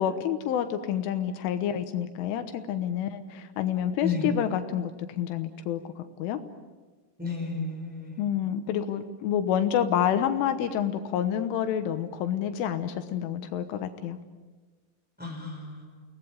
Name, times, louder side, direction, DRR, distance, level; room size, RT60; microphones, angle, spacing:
voice 1, 0.0-6.4 8.2-14.2, left 9 dB, 80° left, 8 dB, 3.6 m, -28 dB
voice 2, 7.2-8.2 15.2-16.0, left 4 dB, ahead, 1 dB, 4.8 m, -33 dB
29.5 x 20.0 x 8.7 m, 1.3 s
omnidirectional pair, 5.7 m